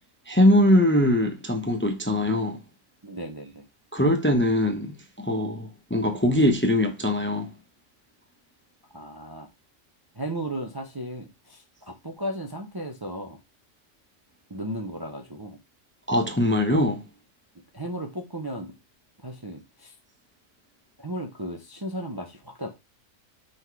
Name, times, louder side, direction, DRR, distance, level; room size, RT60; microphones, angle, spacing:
voice 1, 0.3-2.6 3.9-7.5 16.1-17.0, left 1 dB, 10° left, 0.7 m, -22 dB
voice 2, 3.0-3.7 8.9-9.5 10.1-13.4 14.5-15.6 17.7-18.8 19.2-19.9 21.0-22.7, right 1 dB, 20° right, 0.7 m, -35 dB
5.8 x 4.0 x 4.6 m
omnidirectional pair, 1.3 m